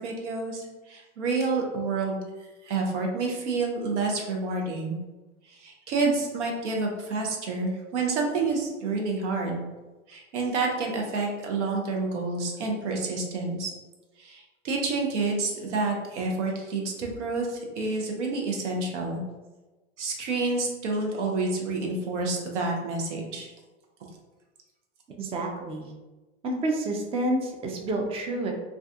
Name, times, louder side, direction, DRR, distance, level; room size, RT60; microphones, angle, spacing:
voice 1, 0.0-2.2 2.6-5.0 5.5-9.6 10.1-13.7 14.2-19.2 20.0-23.5, right 3 dB, 85° right, 0 dB, 0.6 m, -29 dB
voice 2, 25.2-25.9 26.4-28.5, right 1 dB, 15° right, 1 dB, 0.4 m, -29 dB
2.3 x 2.3 x 2.6 m, 1.1 s
hypercardioid pair, 90°, 35 cm